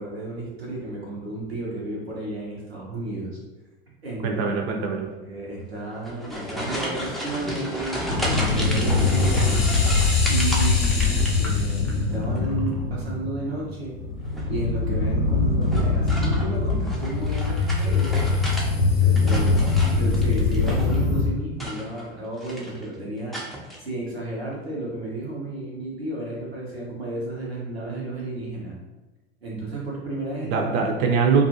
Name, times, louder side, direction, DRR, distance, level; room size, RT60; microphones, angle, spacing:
voice 1, 0.0-3.4 4.0-4.4 5.2-9.6 10.3-13.9 14.5-18.2 18.8-23.4 23.8-28.7 29.4-30.7, right 2 dB, 90° right, -4 dB, 0.8 m, -32 dB
voice 2, 4.2-5.1 19.3-19.6 30.4-31.4, right 5 dB, 50° right, 2 dB, 0.6 m, -23 dB
sound 1, 5.9-11.9 12.2-12.8 14.2-14.6 15.6-18.7 19.0-21.0 21.5-22.1 22.4-22.8 23.3-23.8, equal, ahead, 0.4 m, -33 dB
sound 2, 8.1-21.2, left 4 dB, 90° left, 0.6 m, -22 dB
2.5 x 2.4 x 2.7 m, 1.1 s
figure-of-eight pair, 75°, 30 cm